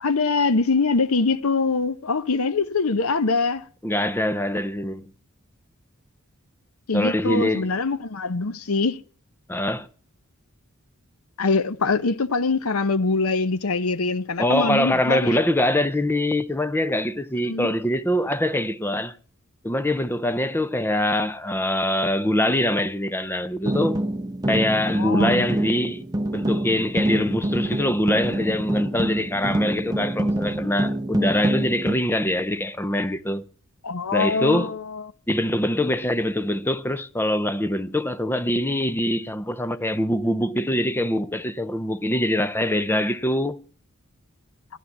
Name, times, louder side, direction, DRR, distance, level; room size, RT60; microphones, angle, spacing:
voice 1, 0.0-3.6 6.9-9.0 11.4-15.4 17.5-17.7 25.0-25.4 33.8-35.1, left 4 dB, 80° left, 0.8 m, -23 dB
voice 2, 3.8-5.1 6.9-7.7 9.5-9.9 14.4-19.1 19.6-24.0 24.5-26.0 26.3-33.4 34.1-34.7 35.3-43.6, left 1 dB, 10° left, 0.7 m, -24 dB
sound 1, 23.7-32.0, right 1 dB, 15° right, 0.9 m, -26 dB
14.0 x 11.0 x 7.3 m
head